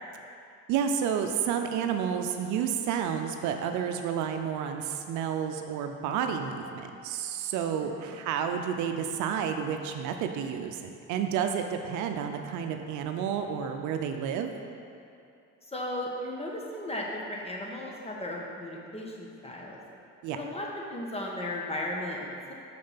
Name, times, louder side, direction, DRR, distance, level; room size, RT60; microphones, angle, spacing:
voice 1, 0.7-14.5 20.2-20.4, right 8 dB, 75° right, 5 dB, 0.6 m, -30 dB
voice 2, 7.8-8.2 15.7-19.8 20.3-22.5, left 1 dB, 20° left, -2 dB, 1.3 m, -36 dB
5.9 x 5.2 x 5.7 m, 2.6 s
supercardioid pair, 85°, 30 cm